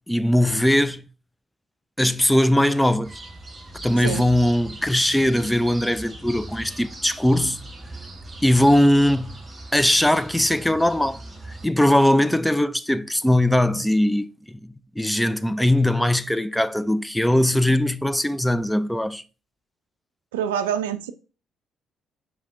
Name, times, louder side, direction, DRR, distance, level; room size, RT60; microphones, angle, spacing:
voice 1, 0.1-1.1 2.0-3.2 3.8-7.6 8.4-9.4 9.7-19.2, left 1 dB, 5° left, 0.3 m, -20 dB
sound 1, 3.0-11.7, right 2 dB, 25° right, 1.5 m, -40 dB
voice 2, 20.3-21.1, right 9 dB, 75° right, 0.3 m, -26 dB
4.9 x 3.2 x 3.5 m
figure-of-eight pair, 45°, 0 cm